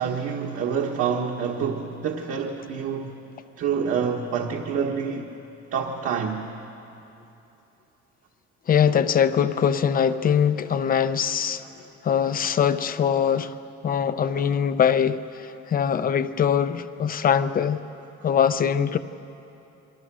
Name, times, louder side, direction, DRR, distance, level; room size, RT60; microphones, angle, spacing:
voice 1, 0.0-3.1 3.6-5.3 5.7-6.5, right 6 dB, 50° right, 1.5 m, -27 dB
voice 2, 8.7-11.6 12.0-13.5 13.8-17.8 18.2-19.0, left 8 dB, 30° left, 0.6 m, -22 dB
28.0 x 23.5 x 6.2 m
cardioid pair, 170°, 30 cm